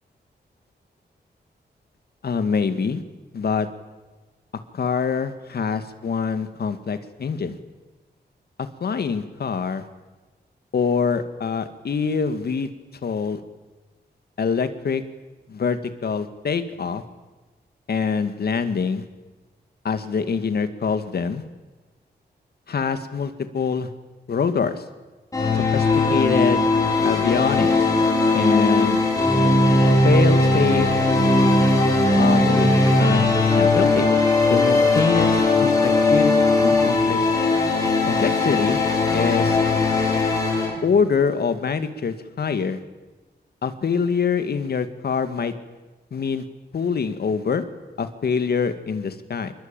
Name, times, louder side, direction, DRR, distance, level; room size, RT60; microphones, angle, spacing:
voice 1, 2.2-3.0 3.3-3.7 4.7-7.6 8.8-9.8 10.7-12.7 13.0-13.4 14.4-15.0 15.5-17.0 17.9-19.1 19.8-21.4 22.7-23.9 24.3-24.8 25.5-25.9 26.1-26.6 27.0-27.7 28.3-29.0 30.0-30.9 32.1-33.2 33.5-34.1 34.5-37.2 38.1-38.8 39.1-39.6 40.8-42.8 43.6-45.5 46.1-46.4 46.7-47.6 48.0-49.5, left 5 dB, 65° left, 10 dB, 2.2 m, -24 dB
sound 1, 25.3-40.7, left 2 dB, 20° left, 7.1 m, -18 dB
27.5 x 22.0 x 9.1 m, 1.2 s
wide cardioid pair, 180°, 18 cm